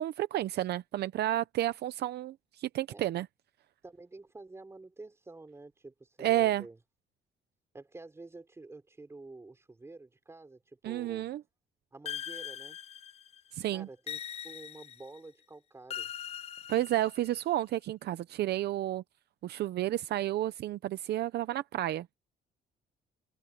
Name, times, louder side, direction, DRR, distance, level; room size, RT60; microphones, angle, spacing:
voice 1, 0.0-3.3 6.2-6.6 10.8-11.4 13.5-13.9 16.7-19.0 19.4-22.1, right 14 dB, 65° right, 0.7 m, -31 dB
voice 2, 3.8-6.8 7.7-11.3 11.9-12.8 13.7-16.1, right 3 dB, 15° right, 4.7 m, -49 dB
sound 1, 12.1-13.4 14.1-15.2 15.9-17.4, left 9 dB, 35° left, 0.5 m, -41 dB
cardioid pair, 160°, 18 cm